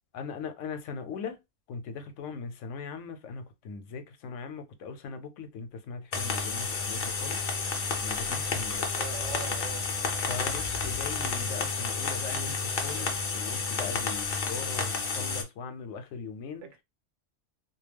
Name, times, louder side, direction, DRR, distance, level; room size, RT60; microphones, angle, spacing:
voice 1, 0.1-1.4 1.7-7.4 8.0-9.0 10.1-16.7, left 5 dB, 90° left, 0.9 m, -40 dB
sound 1, 6.1-15.4, left 4 dB, 60° left, 0.7 m, -31 dB
voice 2, 9.0-9.8 12.9-13.2 16.6-16.8, right 6 dB, 80° right, 1.0 m, -42 dB
2.2 x 2.2 x 3.3 m
omnidirectional pair, 1.2 m